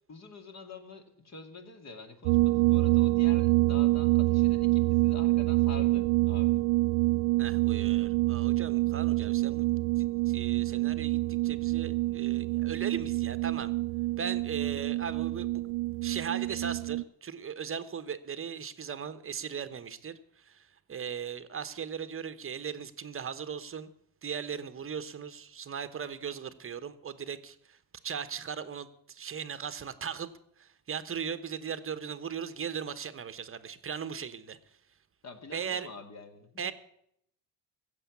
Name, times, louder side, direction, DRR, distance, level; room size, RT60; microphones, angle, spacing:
voice 1, 0.1-6.6 14.6-14.8 35.2-36.7, left 3 dB, 40° left, 6 dB, 2.4 m, -46 dB
sound 1, 2.3-17.0, right 20 dB, 80° right, 0.5 m, -26 dB
voice 2, 7.4-9.6 10.0-13.7 14.2-15.6 16.0-23.9 24.2-27.8 28.0-30.3 30.6-34.6 35.5-35.9 36.6-36.7, right 7 dB, 30° right, 12 dB, 1.0 m, -38 dB
15.5 x 7.9 x 8.4 m, 0.72 s
cardioid pair, 100°, 41 cm